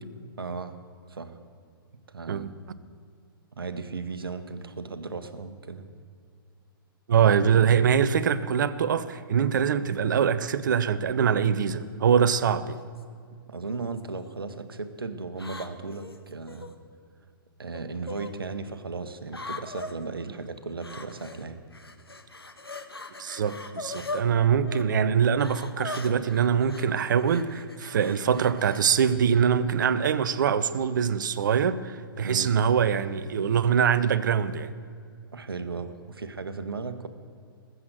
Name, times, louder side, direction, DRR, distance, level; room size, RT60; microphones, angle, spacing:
voice 1, 0.4-0.8 1.1-1.4 2.1-2.5 3.6-5.8 13.5-16.7 17.6-21.6 32.2-32.6 35.3-37.1, right 4 dB, 70° right, 1.3 m, -36 dB
voice 2, 7.1-12.8 23.2-34.7, right 7 dB, 55° right, 0.7 m, -23 dB
sound 1, 12.7-13.0 13.8-14.3 15.4-16.7 17.7-18.3 19.3-19.9 20.8-21.4 21.7-24.2 24.6-24.8 25.4-28.8, left 2 dB, 85° left, 1.2 m, -40 dB
20.0 x 8.0 x 7.8 m
figure-of-eight pair, 120°, 12 cm